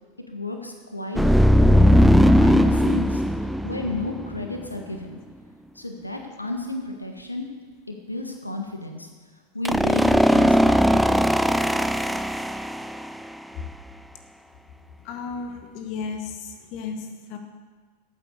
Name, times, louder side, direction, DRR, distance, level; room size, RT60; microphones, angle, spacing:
voice 1, 0.3-2.0 2.2-5.2 5.7-7.5 7.9-9.1 9.5-11.2, left 2 dB, 85° left, 3 dB, 1.4 m, -33 dB
sound 1, 1.2-4.6 9.7-13.2, equal, ahead, 0.4 m, -18 dB
voice 2, 15.0-17.4, left 5 dB, 40° left, 5 dB, 1.5 m, -34 dB
13.5 x 9.0 x 6.5 m, 1.4 s
figure-of-eight pair, 90°, 0 cm